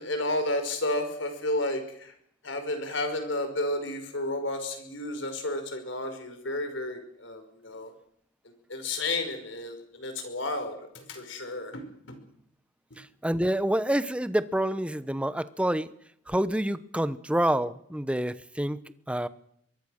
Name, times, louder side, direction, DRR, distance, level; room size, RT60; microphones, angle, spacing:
voice 1, 0.0-2.1 2.4-7.9 8.4-12.2 12.9-13.0, left 1 dB, 70° left, 7 dB, 5.4 m, -32 dB
voice 2, 13.0-15.9 16.3-18.8 19.1-19.3, right 1 dB, 5° right, 14 dB, 0.9 m, -27 dB
23.5 x 23.0 x 6.5 m, 0.68 s
head